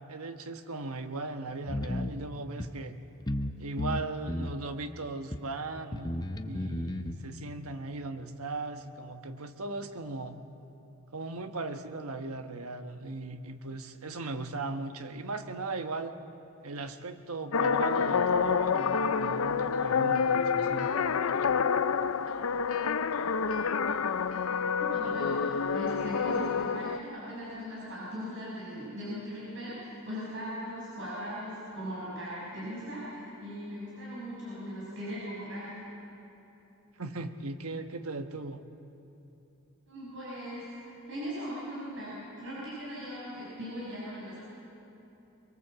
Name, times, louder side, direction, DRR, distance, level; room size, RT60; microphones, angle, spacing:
voice 1, 0.1-3.0 3.6-10.4 11.1-16.1 16.6-20.9 37.0-38.6, right 3 dB, 80° right, 7 dB, 1.3 m, -38 dB
sound 1, 1.7-2.1 2.6-2.7 3.3-3.5 3.8-4.6 5.3-5.4 5.9-7.1, left 1 dB, 20° left, 0.7 m, -33 dB
sound 2, 17.5-27.0, left 6 dB, 70° left, 0.6 m, -28 dB
voice 2, 24.8-35.7 39.9-44.4, equal, 60° right, -8 dB, 6.5 m, -39 dB
23.5 x 22.5 x 7.7 m, 3.0 s
head